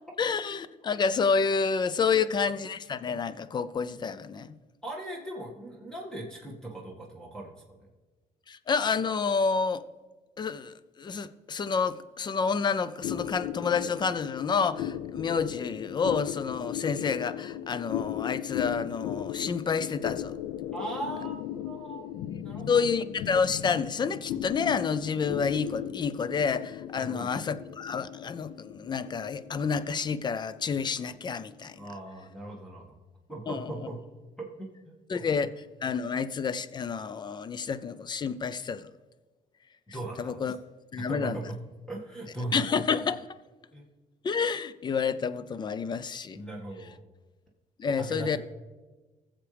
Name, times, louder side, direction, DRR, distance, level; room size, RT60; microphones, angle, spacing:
voice 1, 0.2-4.5 8.5-9.8 10.4-20.3 22.7-31.9 33.5-33.7 35.1-38.9 40.2-40.6 40.9-41.4 42.5-43.3 44.2-46.4 47.8-48.4, left 5 dB, 30° left, 0.5 m, -29 dB
voice 2, 4.8-7.9 20.7-22.0 22.4-22.8 27.0-27.4 31.8-33.0 33.3-34.0 34.4-35.2 39.9-40.4 41.0-41.6 41.9-42.7 43.7-43.8 46.3-47.0 48.0-48.4, right 2 dB, 5° left, 1.9 m, -39 dB
sound 1, 13.0-31.8, left 11 dB, 90° left, 0.4 m, -37 dB
20.0 x 7.4 x 3.4 m
cardioid pair, 115°, 14 cm